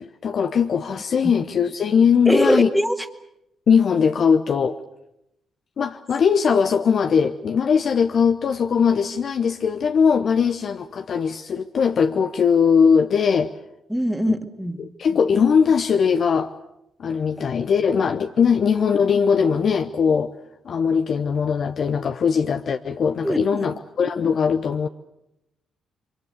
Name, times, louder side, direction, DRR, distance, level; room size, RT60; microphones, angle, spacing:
voice 1, 0.0-2.7 3.7-4.8 5.8-13.5 14.3-14.4 14.8-16.5 17.0-20.3 20.6-24.9, left 6 dB, 55° left, 7 dB, 0.9 m, -20 dB
voice 2, 2.3-3.0 13.9-14.7 23.2-23.4, equal, ahead, 7 dB, 2.1 m, -21 dB
26.5 x 24.0 x 6.6 m, 0.81 s
hypercardioid pair, 40°, 0 cm